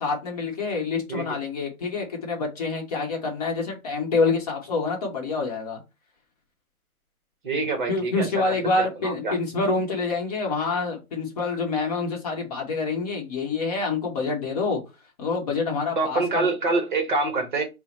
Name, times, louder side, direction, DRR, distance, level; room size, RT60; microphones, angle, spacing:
voice 1, 0.0-5.8 7.9-14.8 15.2-16.5, left 3 dB, 25° left, 1.0 m, -27 dB
voice 2, 7.4-8.3 8.6-9.4 16.0-17.6, right 3 dB, 35° right, 0.8 m, -26 dB
4.4 x 2.1 x 4.1 m
hypercardioid pair, 150°, 45 cm